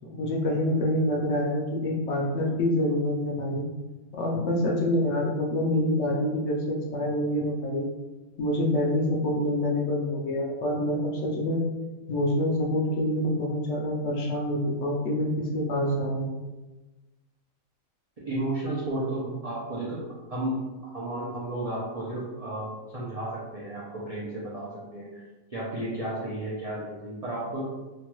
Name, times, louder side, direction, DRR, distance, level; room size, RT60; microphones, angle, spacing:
voice 1, 0.0-3.6 4.1-7.9 8.4-11.6 12.1-16.2, left 1 dB, 65° left, -2 dB, 0.8 m, -26 dB
voice 2, 18.2-20.0 20.3-20.6 20.8-25.2 25.5-27.6, right 1 dB, 55° right, -7 dB, 0.4 m, -33 dB
3.1 x 2.2 x 2.9 m, 1.1 s
omnidirectional pair, 1.4 m